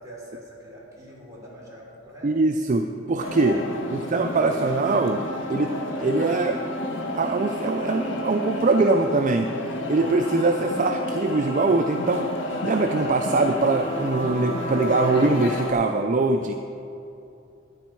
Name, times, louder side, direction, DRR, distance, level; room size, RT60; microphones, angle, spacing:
voice 1, 0.0-2.4, equal, 15° right, -6 dB, 3.3 m, -44 dB
voice 2, 2.2-3.6 3.9-6.6 7.1-9.5 9.9-12.3 12.6-16.5, right 3 dB, 40° right, 5 dB, 0.4 m, -22 dB
sound 1, 3.2-15.7, left 1 dB, 75° left, 1.3 m, -31 dB
sound 2, 9.7-15.3, equal, 30° left, 1.5 m, -35 dB
13.5 x 9.8 x 4.7 m, 2.7 s
head